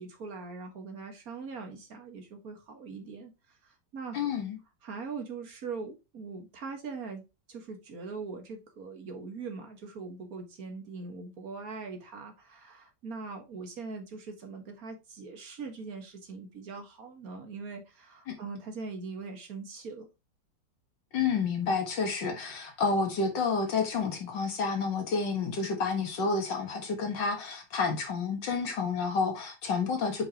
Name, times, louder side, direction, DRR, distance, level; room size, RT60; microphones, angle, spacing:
voice 1, 0.0-4.2 4.8-7.2 7.5-20.1, right 4 dB, 55° right, 2.0 m, -41 dB
voice 2, 4.1-4.6 18.3-18.4 21.1-30.3, left 4 dB, 90° left, 2.3 m, -30 dB
7.7 x 5.1 x 2.9 m
omnidirectional pair, 1.9 m